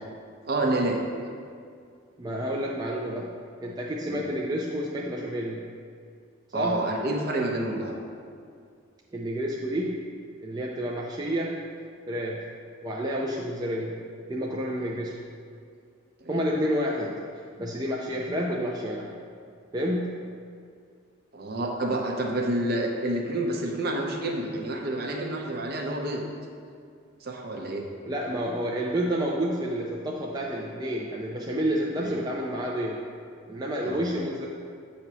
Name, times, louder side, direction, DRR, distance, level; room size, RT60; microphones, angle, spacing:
voice 1, 0.5-1.0 4.1-4.2 6.5-8.0 16.2-16.4 21.3-26.2 27.2-27.8 32.0-32.2 33.8-34.0, right 1 dB, 50° right, 1 dB, 0.7 m, -28 dB
voice 2, 2.2-3.3 3.6-5.7 6.5-6.9 9.1-10.0 10.4-11.6 12.1-12.5 12.8-14.0 14.3-15.2 16.3-19.1 19.7-20.2 28.1-33.0 33.5-34.5, equal, 20° right, -3 dB, 0.4 m, -29 dB
8.0 x 2.9 x 6.0 m, 2.2 s
head